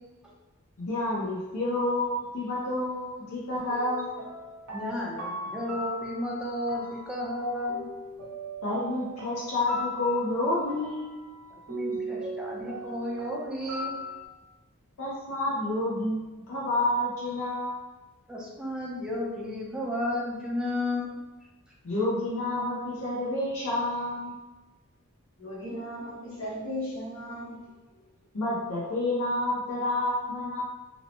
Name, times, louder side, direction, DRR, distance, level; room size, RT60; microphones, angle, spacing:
voice 1, 0.8-4.1 8.6-11.2 15.0-17.8 21.8-24.4 28.3-30.6, left 1 dB, 85° left, -7 dB, 0.7 m, -29 dB
sound 1, 3.6-14.3, right 1 dB, 75° right, 0.5 m, -39 dB
voice 2, 4.7-7.8 11.7-14.0 18.3-21.2, left 1 dB, 5° right, -5 dB, 0.5 m, -33 dB
voice 3, 25.4-27.5, equal, 60° left, -8 dB, 1.2 m, -36 dB
2.7 x 2.1 x 2.8 m, 1.2 s
head